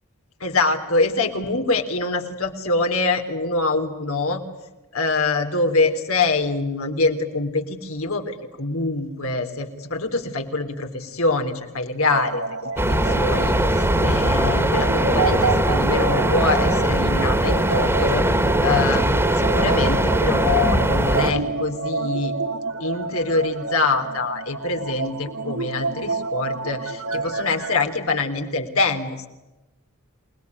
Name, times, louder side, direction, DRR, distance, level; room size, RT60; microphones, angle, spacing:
voice 1, 0.4-4.4 4.9-19.0 19.3-22.3 22.8-29.3, left 3 dB, 75° left, 5 dB, 3.5 m, -24 dB
sound 1, 12.1-27.8, right 3 dB, 85° right, 3.0 m, -29 dB
sound 2, 12.8-21.3, right 1 dB, 10° right, 2.3 m, -20 dB
28.0 x 20.0 x 9.6 m, 1.1 s
head